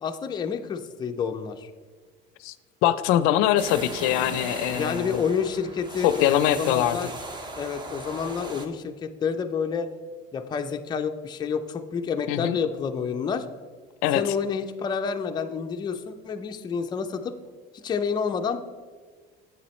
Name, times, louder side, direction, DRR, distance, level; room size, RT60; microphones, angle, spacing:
voice 1, 0.0-1.7 4.8-7.1 7.6-9.9 10.3-13.5 14.1-17.3 17.8-18.6, left 6 dB, 20° left, 6 dB, 0.4 m, -29 dB
voice 2, 2.8-5.2 6.0-7.0 12.3-12.6 14.0-14.2, left 12 dB, 85° left, 14 dB, 0.4 m, -23 dB
sound 1, 3.6-8.7, right 2 dB, 20° right, 0.7 m, -37 dB
8.2 x 7.0 x 3.1 m, 1.5 s
cardioid pair, 155°, 21 cm